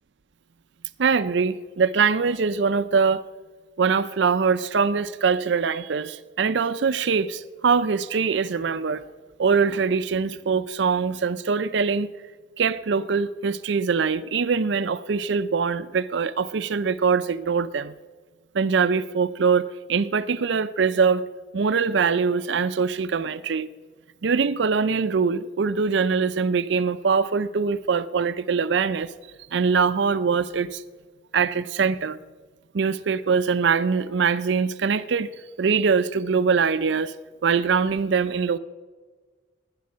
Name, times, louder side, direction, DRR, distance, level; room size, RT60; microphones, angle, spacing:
voice 1, 1.0-3.2 3.8-9.0 9.4-12.1 12.6-17.9 18.5-21.2 21.5-23.7 24.2-29.1 29.5-30.8 31.3-32.2 32.7-35.3 35.6-37.1 37.4-38.6, right 5 dB, 70° right, 0.5 m, -23 dB
16.5 x 10.5 x 5.6 m
head